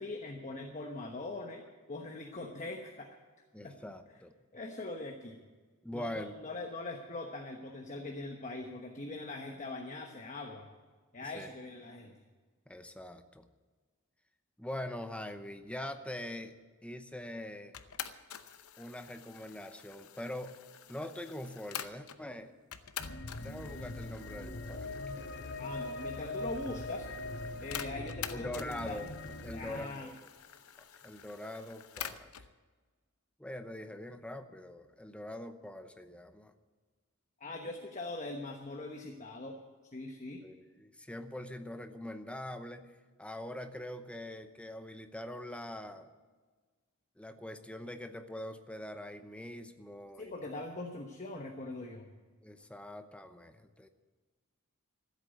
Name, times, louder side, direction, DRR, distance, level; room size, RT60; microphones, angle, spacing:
voice 1, 0.0-1.6 1.9-3.1 3.6-3.7 4.5-5.4 5.9-10.7 11.1-12.2 25.6-27.1 27.6-29.0 29.5-30.1 37.4-39.6 39.9-40.5 50.2-52.1, left 2 dB, 35° left, 2 dB, 1.1 m, -42 dB
voice 2, 3.5-4.3 5.8-6.3 11.2-11.5 12.7-13.5 14.6-16.5 16.8-17.8 18.8-20.6 20.9-22.5 23.4-25.3 25.8-25.9 28.3-29.1 29.4-30.2 31.0-32.3 33.4-36.5 40.4-46.1 47.2-50.3 52.4-53.9, left 1 dB, 5° left, 8 dB, 0.8 m, -43 dB
sound 1, 17.7-22.2 22.7-32.5, left 9 dB, 80° left, 0.8 m, -47 dB
sound 2, 23.0-29.8, left 2 dB, 50° left, 0.9 m, -41 dB
14.5 x 8.3 x 9.1 m, 1.4 s
head